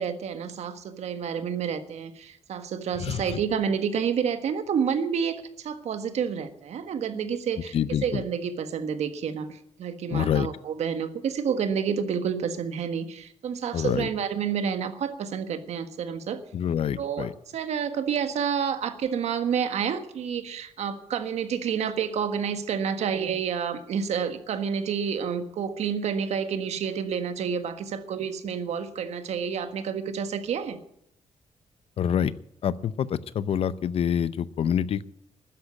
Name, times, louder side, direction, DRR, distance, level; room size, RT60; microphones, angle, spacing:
voice 1, 0.0-7.8 8.0-16.4 17.0-17.3 17.5-30.8, right 7 dB, 75° right, 9 dB, 1.6 m, -29 dB
voice 2, 3.0-3.4 7.7-8.2 10.1-10.5 13.7-14.1 16.5-17.3 32.0-32.3 32.6-35.1, left 9 dB, 60° left, 17 dB, 0.7 m, -26 dB
12.5 x 10.0 x 9.7 m, 0.73 s
wide cardioid pair, 150°, 11 cm